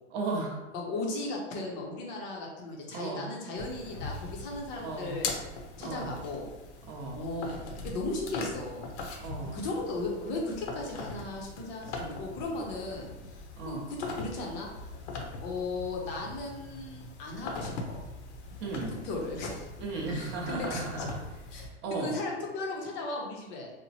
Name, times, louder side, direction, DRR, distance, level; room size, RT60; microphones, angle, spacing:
voice 1, 0.1-0.6 2.9-3.2 4.8-5.1 5.8-6.1 6.9-7.2 9.2-9.6 13.6-13.8 18.6-18.9 19.8-21.1 21.8-22.1, right 3 dB, 30° right, -1 dB, 0.6 m, -35 dB
voice 2, 0.7-5.4 5.8-6.5 7.1-8.9 9.5-14.7 15.4-18.0 19.0-19.7 20.1-21.1 21.5-21.7 22.0-23.7, left 2 dB, 35° left, -1 dB, 0.6 m, -36 dB
sound 1, 3.6-21.7, left 3 dB, 70° left, 0.7 m, -41 dB
2.9 x 2.1 x 2.7 m, 1.1 s
hypercardioid pair, 135°, 35 cm